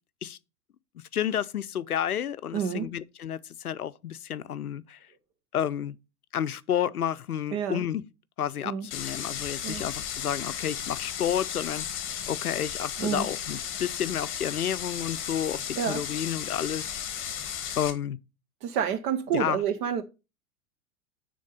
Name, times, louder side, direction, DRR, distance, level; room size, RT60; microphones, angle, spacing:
voice 1, 1.1-5.0 5.5-6.0 6.3-8.0 8.4-16.9 17.8-18.2 19.3-19.6, left 9 dB, 85° left, 0.6 m, -31 dB
voice 2, 2.5-2.9 7.5-7.9 8.6-8.9 9.6-9.9 13.0-13.3 15.8-16.0 18.6-20.0, right 8 dB, 15° right, 0.3 m, -29 dB
sound 1, 8.9-17.9, left 9 dB, 30° left, 1.6 m, -35 dB
9.6 x 3.8 x 5.3 m
figure-of-eight pair, 95°, 44 cm